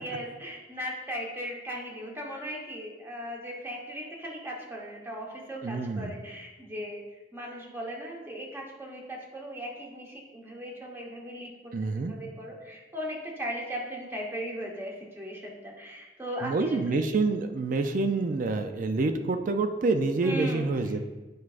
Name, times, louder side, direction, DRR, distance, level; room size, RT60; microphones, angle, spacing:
voice 1, 0.0-7.0 7.3-17.0 20.2-21.0, equal, 15° right, -1 dB, 1.1 m, -38 dB
voice 2, 5.6-6.1 11.7-12.1 16.4-21.0, right 3 dB, 45° right, 7 dB, 0.4 m, -27 dB
9.2 x 4.7 x 2.4 m, 1.1 s
head